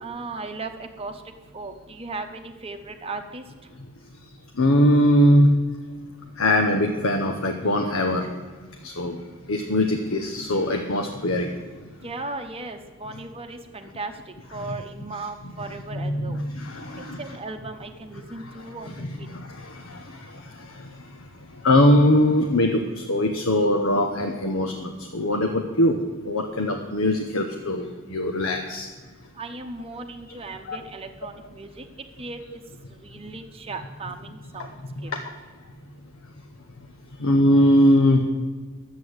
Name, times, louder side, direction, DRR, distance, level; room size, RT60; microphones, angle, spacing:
voice 1, 0.0-1.2 1.5-3.4 12.0-14.1 14.5-16.4 17.2-19.3 29.4-31.8 32.2-32.4 33.0-34.7 35.0-35.1, right 3 dB, 30° right, 5 dB, 0.9 m, -36 dB
voice 2, 4.6-5.5 6.4-8.3 8.8-9.2 9.5-11.5 15.9-17.2 18.4-18.5 18.9-20.9 21.6-26.0 26.2-28.9 30.7-30.8 35.1-35.2 37.2-38.2, left 1 dB, 80° left, 4 dB, 1.0 m, -21 dB
11.5 x 8.3 x 8.0 m, 1.4 s
head